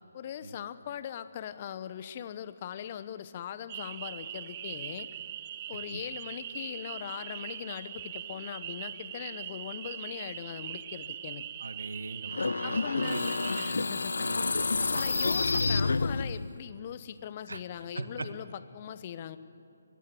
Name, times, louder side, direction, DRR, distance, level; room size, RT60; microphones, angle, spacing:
voice 1, 0.1-5.1 5.7-11.5 12.6-14.3 14.8-19.4, left 9 dB, 35° left, 14 dB, 0.9 m, -40 dB
sound 1, 3.7-13.7, right 11 dB, 35° right, 0.6 m, -41 dB
voice 2, 11.6-13.3 13.7-14.4 15.2-15.4 17.5-17.6 17.9-18.3, right 2 dB, 75° right, 11 dB, 1.4 m, -40 dB
sound 2, 12.3-16.6, left 3 dB, 70° left, 0.6 m, -29 dB
22.5 x 15.5 x 8.9 m, 2.6 s
figure-of-eight pair, 145°, 0 cm